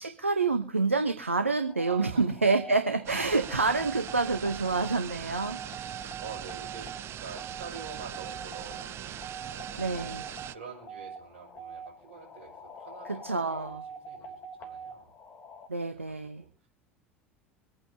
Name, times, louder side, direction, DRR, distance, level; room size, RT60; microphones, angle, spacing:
voice 1, 0.0-5.6 9.8-10.2 13.1-13.8 15.7-16.4, right 3 dB, 90° right, 8 dB, 0.8 m, -28 dB
sound 1, 1.7-15.7, right 4 dB, 35° left, 3.1 m, -44 dB
voice 2, 1.9-2.4 6.2-9.2 9.5-15.1 15.9-16.7, right 5 dB, 70° right, -1 dB, 5.3 m, -47 dB
sound 2, 3.1-10.6, right 11 dB, 40° right, 0.5 m, -41 dB
25.5 x 9.0 x 2.7 m, 0.36 s
figure-of-eight pair, 70°, 7 cm